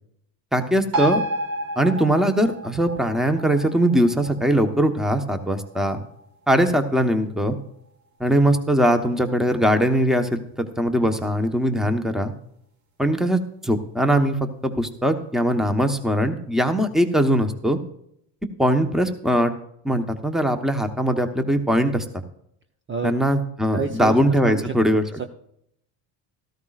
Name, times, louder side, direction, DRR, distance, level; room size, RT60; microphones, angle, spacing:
voice 1, 0.5-1.2 1.8-6.0 6.5-7.5 8.2-12.3 13.0-17.8 18.6-19.5 19.8-22.2 23.0-25.0, equal, ahead, 6 dB, 1.1 m, -21 dB
sound 1, 0.9-7.9 8.2-8.3, right 1 dB, 50° right, 2.7 m, -32 dB
voice 2, 23.7-24.2 24.5-24.7 25.2-25.3, right 6 dB, 25° right, 5 dB, 0.8 m, -27 dB
14.0 x 13.0 x 2.5 m, 0.71 s
supercardioid pair, 105°, 44 cm